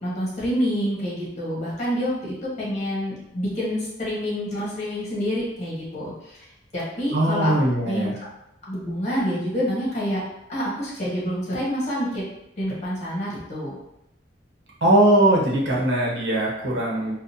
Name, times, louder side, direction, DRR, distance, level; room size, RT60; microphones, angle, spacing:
voice 1, 0.0-6.4 6.7-7.6 7.9-8.1 8.6-10.2 10.5-12.2 12.6-13.8, equal, 40° left, -6 dB, 1.3 m, -27 dB
voice 2, 7.1-8.1 14.8-17.2, right 1 dB, 80° right, -4 dB, 0.9 m, -20 dB
3.8 x 2.3 x 2.8 m, 0.84 s
head